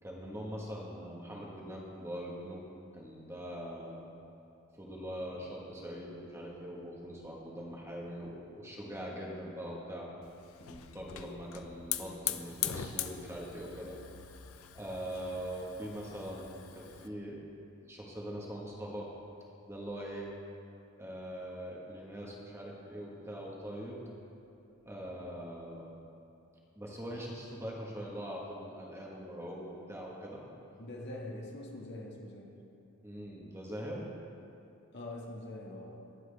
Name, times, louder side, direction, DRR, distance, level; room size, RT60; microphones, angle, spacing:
voice 1, 0.0-2.6 2.9-4.1 4.8-10.1 10.6-14.0 14.7-17.4 17.8-19.1 19.7-20.3 21.0-24.0 24.8-25.8 26.7-30.4 33.0-34.1, equal, 10° right, -3 dB, 1.4 m, -42 dB
Hiss / Fire, 10.2-17.1, left 11 dB, 70° left, 0.6 m, -41 dB
voice 2, 30.8-32.5 34.9-36.0, left 1 dB, 55° left, -2 dB, 1.7 m, -43 dB
21.0 x 7.6 x 3.4 m, 2.9 s
head